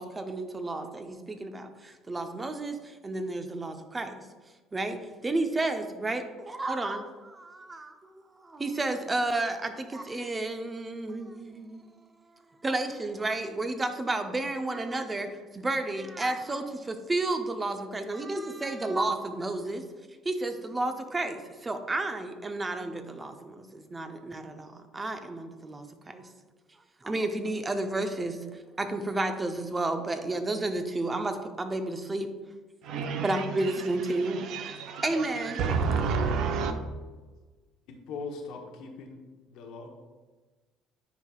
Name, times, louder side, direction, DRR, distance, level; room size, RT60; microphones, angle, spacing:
voice 1, 0.0-4.3 4.7-8.1 8.4-11.9 12.6-19.8 20.2-26.3 27.0-32.3 33.2-34.7 35.0-35.6, right 2 dB, 20° right, 0.8 m, -32 dB
voice 2, 32.8-36.8, right 5 dB, 55° right, 0.6 m, -31 dB
voice 3, 37.9-39.2 39.5-39.9, left 4 dB, 60° left, 1.0 m, -40 dB
9.6 x 5.5 x 2.4 m
figure-of-eight pair, 55°, 0 cm